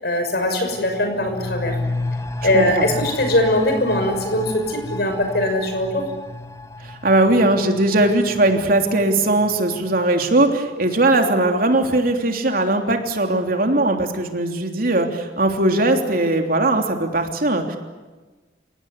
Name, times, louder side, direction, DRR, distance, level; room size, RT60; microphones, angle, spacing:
voice 1, 0.0-1.7 2.4-6.1, left 1 dB, 65° left, 6 dB, 6.4 m, -21 dB
sound 1, 0.7-10.1 10.4-10.5, left 2 dB, 15° left, 1.0 m, -32 dB
voice 2, 2.5-2.9 6.8-17.8, right 2 dB, 55° right, 4 dB, 3.3 m, -19 dB
30.0 x 18.0 x 9.9 m, 1.3 s
head